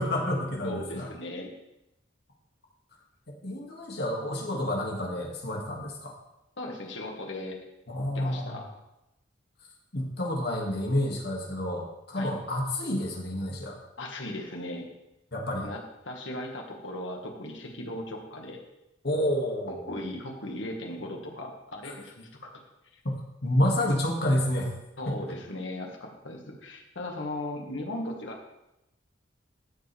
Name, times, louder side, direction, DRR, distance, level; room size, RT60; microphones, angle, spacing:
voice 1, 0.0-1.1 3.4-6.1 7.9-8.6 9.9-13.8 15.3-15.7 19.0-20.0 21.8-21.9 23.0-23.2 23.4-24.7 25.1-25.2, left 1 dB, 60° left, -1 dB, 2.4 m, -29 dB
voice 2, 0.6-1.5 6.6-7.6 8.1-8.7 12.2-12.3 14.0-14.9 15.6-18.6 19.7-22.5 22.9-23.0 23.9-24.0 25.0-28.5, left 1 dB, 85° left, 1 dB, 2.0 m, -37 dB
14.0 x 7.6 x 3.6 m, 0.90 s
head